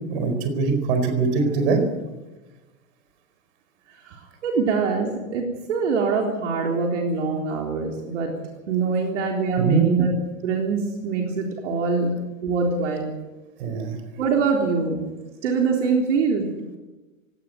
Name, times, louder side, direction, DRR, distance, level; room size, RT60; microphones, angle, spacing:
voice 1, 0.0-1.8 9.6-9.9 13.6-14.0, right 4 dB, 45° right, 7 dB, 4.7 m, -22 dB
voice 2, 3.9-8.4 8.7-10.1 10.4-12.1 12.4-13.1 14.2-15.1 15.4-16.5, right 4 dB, 60° right, 1 dB, 3.8 m, -24 dB
17.5 x 17.0 x 9.3 m, 1.2 s
supercardioid pair, 165°, 40 cm